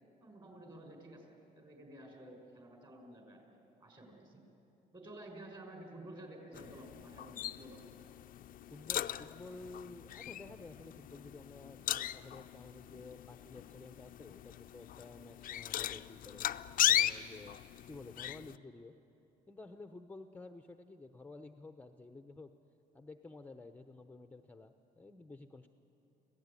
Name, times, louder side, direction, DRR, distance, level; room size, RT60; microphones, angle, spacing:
voice 1, 0.2-3.4 3.8-4.4 4.9-7.8, right 1 dB, 30° right, 2 dB, 5.9 m, -52 dB
sound 1, 6.5-18.6, left 12 dB, 55° left, 0.6 m, -38 dB
voice 2, 8.7-16.4 16.9-17.6 17.9-18.9 19.5-22.5 22.9-25.7, left 3 dB, 10° left, 8 dB, 0.8 m, -52 dB
26.0 x 17.5 x 9.9 m, 2.9 s
cardioid pair, 110°, 17 cm